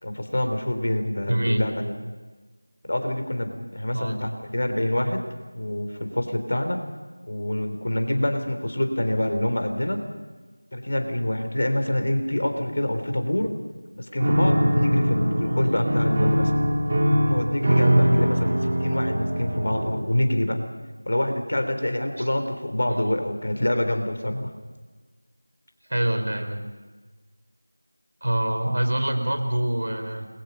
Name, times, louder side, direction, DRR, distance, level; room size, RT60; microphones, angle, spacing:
voice 1, 0.0-1.9 2.9-5.2 5.5-6.8 7.3-10.0 10.7-13.5 14.0-16.5 17.2-20.6 21.1-24.5, left 1 dB, 50° left, 6 dB, 3.8 m, -26 dB
voice 2, 1.3-1.7 3.9-4.2 22.2-22.3 22.9-23.1 25.9-26.7 28.2-30.3, right 1 dB, 60° right, 6 dB, 4.0 m, -25 dB
Piano, 14.2-20.1, equal, 30° right, 5.0 m, -22 dB
28.5 x 22.0 x 5.6 m, 1.4 s
figure-of-eight pair, 170°, 0 cm